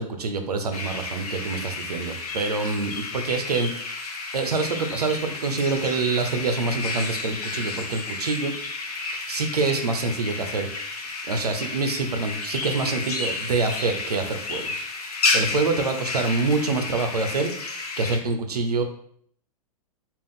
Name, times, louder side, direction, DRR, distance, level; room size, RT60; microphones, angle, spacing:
voice 1, 0.0-3.7 4.3-8.5 9.3-10.7 11.3-14.7 15.3-17.5 18.0-18.8, right 3 dB, 90° right, 6 dB, 0.5 m, -26 dB
sound 1, 0.7-18.2, left 3 dB, 80° left, 0.7 m, -31 dB
3.5 x 2.4 x 3.6 m, 0.63 s
hypercardioid pair, 110°, 19 cm